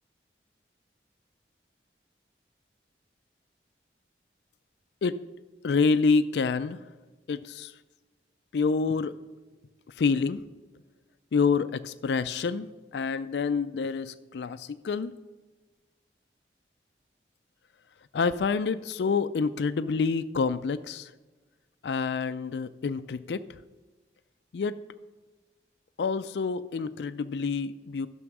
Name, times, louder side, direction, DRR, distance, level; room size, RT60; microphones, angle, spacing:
voice 1, 5.6-6.8 7.3-7.7 8.5-9.2 10.0-10.4 11.3-15.1 18.1-21.1 21.8-23.4 24.5-24.7 26.0-28.1, left 5 dB, 75° left, 13 dB, 0.4 m, -27 dB
11.0 x 6.2 x 6.0 m, 1.2 s
head